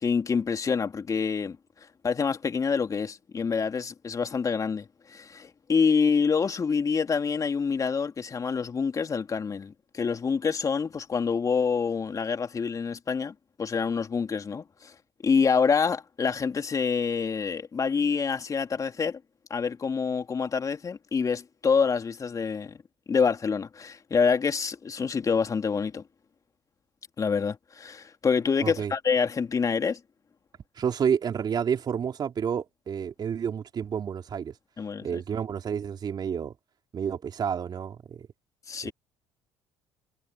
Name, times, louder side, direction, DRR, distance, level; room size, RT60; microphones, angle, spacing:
voice 1, 0.0-1.6 2.0-14.9 15.2-19.2 19.5-22.8 23.1-26.0 27.2-30.0 34.8-35.2 38.7-38.9, left 5 dB, 35° left, 2.9 m, -27 dB
voice 2, 28.6-28.9 30.8-34.6 35.0-36.5 36.9-38.3 38.8-38.9, right 7 dB, 45° right, 3.8 m, -30 dB
hypercardioid pair, 60°, 10 cm